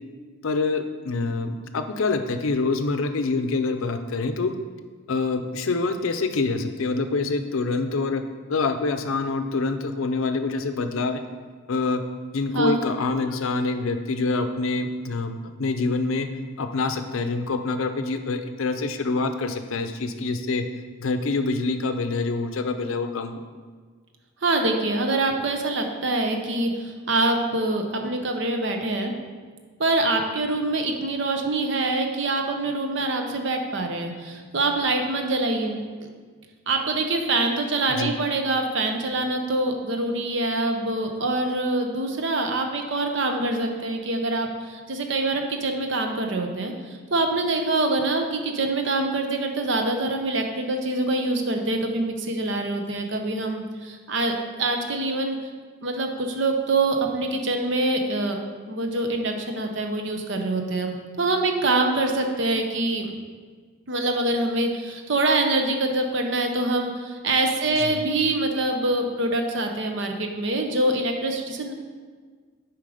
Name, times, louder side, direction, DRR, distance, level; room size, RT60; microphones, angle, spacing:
voice 1, 0.4-4.5 5.1-8.2 8.5-11.2 11.7-12.0 12.3-16.3 16.6-20.6 21.0-23.4 37.9-38.1 67.8-68.0, left 3 dB, 75° left, 8 dB, 0.5 m, -26 dB
voice 2, 24.4-29.1 29.8-36.1 36.7-54.3 54.6-55.4 55.8-58.4 58.7-63.1 63.9-71.7, right 2 dB, 60° right, 4 dB, 0.8 m, -25 dB
7.5 x 4.6 x 5.0 m, 1.5 s
head